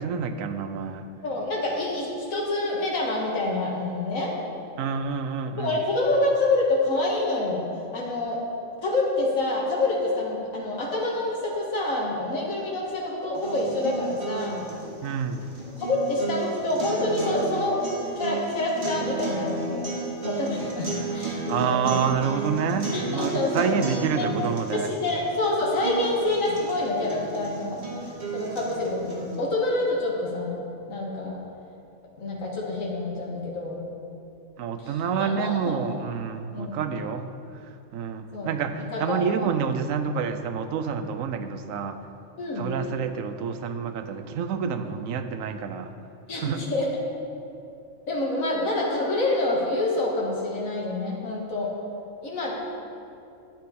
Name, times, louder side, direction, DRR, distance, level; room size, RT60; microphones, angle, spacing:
voice 1, 0.0-1.0 4.8-5.8 15.0-15.5 21.5-24.9 34.6-37.3 37.6-42.0 42.6-45.9 46.4-46.6, right 6 dB, 85° right, 9 dB, 1.0 m, -28 dB
voice 2, 1.2-4.3 5.6-7.7 7.9-8.4 8.8-14.6 15.7-17.8 18.2-19.9 20.2-22.0 22.9-23.7 24.2-24.3 24.7-27.8 28.3-30.6 30.9-31.4 32.2-33.8 34.8-34.9 35.2-35.8 36.5-36.8 38.3-38.5 38.8-39.5 42.4-42.7 46.3-46.9 48.1-51.7 52.2-52.6, left 2 dB, 90° left, -3 dB, 2.0 m, -27 dB
sound 1, 13.3-29.4, right 3 dB, 55° right, 1.8 m, -34 dB
10.5 x 9.6 x 4.2 m, 2.6 s
omnidirectional pair, 1.4 m